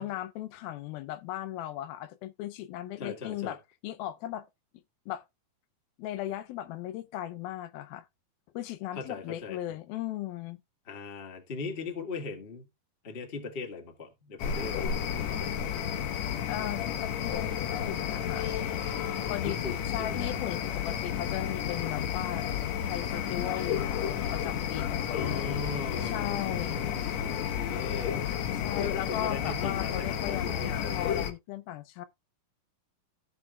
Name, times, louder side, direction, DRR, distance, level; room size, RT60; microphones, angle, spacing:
voice 1, 0.0-3.6 3.8-4.5 5.1-5.2 6.0-8.1 8.5-10.6 16.5-18.5 19.3-19.6 19.9-22.5 22.8-25.6 26.0-26.9 28.5-32.1, left 13 dB, 85° left, 2.5 m, -37 dB
voice 2, 3.0-3.6 8.9-9.6 10.8-12.7 13.0-15.9 19.4-20.3 25.1-28.3 28.8-31.0, left 4 dB, 35° left, 0.9 m, -39 dB
sound 1, 14.4-31.3, left 9 dB, 60° left, 2.0 m, -32 dB
16.0 x 6.0 x 2.3 m
omnidirectional pair, 4.2 m